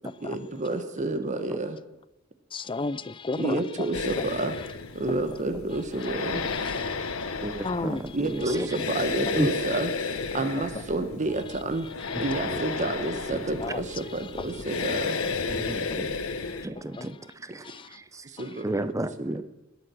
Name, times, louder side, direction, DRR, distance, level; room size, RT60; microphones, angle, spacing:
voice 1, 0.2-1.8 3.4-4.5 4.9-6.4 8.1-11.9 12.2-15.2 15.9-16.0 18.2-18.7 19.2-19.3, right 2 dB, 35° right, 1.1 m, -30 dB
voice 2, 2.5-3.9 4.2-4.4 5.3-5.4 6.3-7.2 7.5-8.0 12.0-12.3 13.6-16.0 16.9-17.1 17.6-18.0 18.4-18.5, left 3 dB, 25° left, 0.5 m, -36 dB
sound 1, 3.9-16.7, left 4 dB, 85° left, 1.2 m, -33 dB
voice 3, 7.4-8.8 9.3-9.5 12.1-12.2 12.5-12.9 13.3-13.6 15.5-16.3 16.6-18.3 18.6-19.4, right 1 dB, 15° right, 0.7 m, -33 dB
21.0 x 8.7 x 6.2 m
head